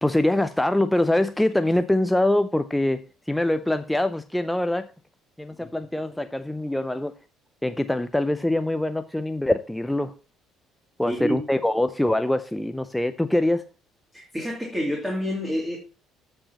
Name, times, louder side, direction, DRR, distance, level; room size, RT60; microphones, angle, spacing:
voice 1, 0.0-4.9 5.4-7.1 7.6-10.1 11.0-13.6, left 1 dB, 5° left, 0.5 m, -24 dB
voice 2, 11.1-11.4 14.1-15.8, equal, 10° right, 2.8 m, -28 dB
15.0 x 5.5 x 2.9 m
figure-of-eight pair, 50°, 0 cm